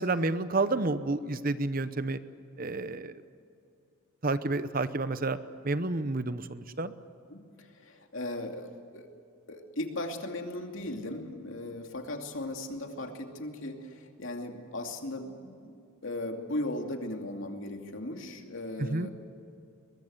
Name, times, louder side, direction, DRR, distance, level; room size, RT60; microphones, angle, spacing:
voice 1, 0.0-2.2 2.6-3.2 4.2-5.4 5.6-6.9 18.9-19.1, right 2 dB, 40° right, 13 dB, 0.8 m, -30 dB
voice 2, 7.3-9.1 9.5-19.1, left 1 dB, 65° left, 4 dB, 2.6 m, -37 dB
22.5 x 22.0 x 8.0 m, 2.6 s
head